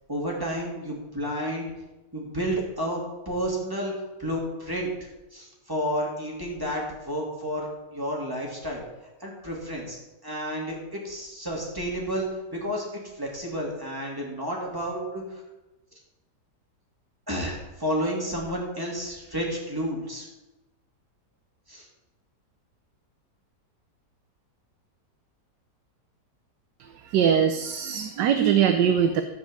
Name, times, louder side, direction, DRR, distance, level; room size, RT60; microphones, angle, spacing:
voice 1, 0.1-1.7 2.1-3.9 4.2-4.9 5.3-8.8 9.2-15.2 17.3-20.3 21.7-21.9, equal, 10° right, -3 dB, 2.8 m, -31 dB
voice 2, 27.0-29.2, right 8 dB, 80° right, 7 dB, 1.4 m, -22 dB
14.0 x 5.3 x 7.7 m, 1.1 s
omnidirectional pair, 1.8 m